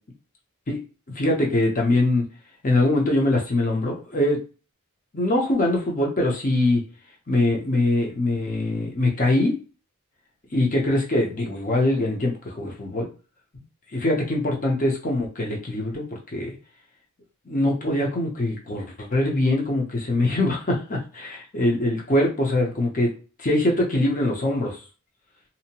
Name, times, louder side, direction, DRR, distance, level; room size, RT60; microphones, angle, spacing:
voice 1, 1.1-2.2 2.6-4.4 5.1-6.8 7.3-9.6 10.5-13.1 13.9-16.5 17.5-23.1 23.4-24.8, left 1 dB, 40° left, 0 dB, 0.7 m, -23 dB
2.7 x 2.1 x 2.8 m, 0.34 s
head